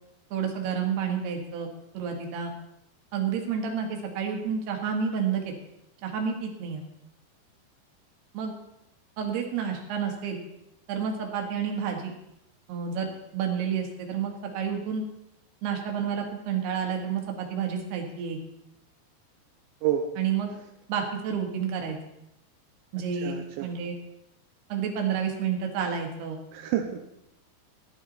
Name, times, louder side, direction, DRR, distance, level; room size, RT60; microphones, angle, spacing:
voice 1, 0.3-1.7 1.9-2.5 3.1-5.6 6.0-6.8 8.3-8.5 9.2-10.4 10.9-12.1 12.7-15.0 15.6-18.4 20.2-20.5 20.9-22.0 22.9-23.4 23.6-23.9 24.7-26.4, right 7 dB, 65° right, 2 dB, 3.6 m, -30 dB
voice 2, 23.2-23.7 26.5-27.0, right 10 dB, 90° right, 3 dB, 3.1 m, -28 dB
14.5 x 11.5 x 4.2 m, 0.83 s
omnidirectional pair, 5.2 m